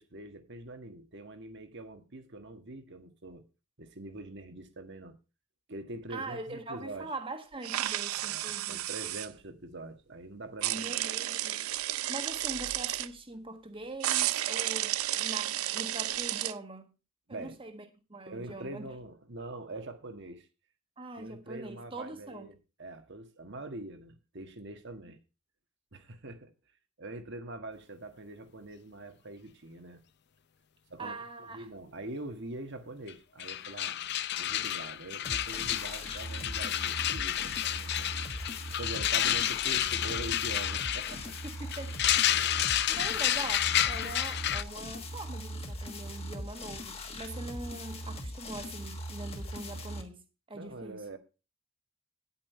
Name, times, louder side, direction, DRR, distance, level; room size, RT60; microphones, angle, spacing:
voice 1, 0.0-3.4 3.8-5.2 5.7-7.1 8.2-10.9 17.3-17.6 18.3-20.5 21.2-25.2 25.9-26.5 27.0-30.0 30.9-31.1 31.5-34.0 34.4-38.2 38.8-41.3 50.5-51.2, right 2 dB, 55° right, 1.6 m, -44 dB
voice 2, 6.1-8.9 10.7-16.9 17.3-18.9 21.0-22.5 31.0-31.7 41.4-42.0 42.9-50.2 50.5-51.0, right 2 dB, 25° right, 1.5 m, -42 dB
sound 1, 7.6-9.3 10.6-13.1 14.0-16.5, right 14 dB, 90° right, 0.5 m, -32 dB
sound 2, 33.1-33.2 33.4-44.6, left 11 dB, 50° left, 0.6 m, -30 dB
sound 3, 35.2-50.0, equal, 30° left, 1.5 m, -40 dB
10.0 x 8.7 x 4.3 m
head